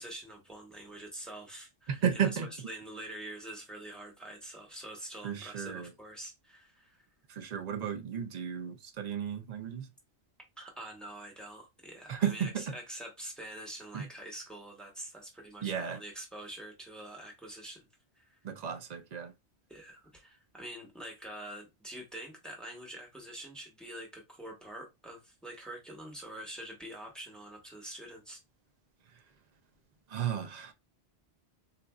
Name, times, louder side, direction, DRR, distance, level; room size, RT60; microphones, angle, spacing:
voice 1, 0.0-7.0 10.6-17.9 18.1-18.4 19.7-28.4, right 1 dB, ahead, 0.9 m, -45 dB
voice 2, 1.9-2.7 5.2-5.9 7.3-9.9 12.1-12.7 13.9-14.1 15.6-16.0 18.4-19.3 30.1-30.7, right 8 dB, 50° right, 0.5 m, -34 dB
4.2 x 2.5 x 2.3 m
omnidirectional pair, 1.1 m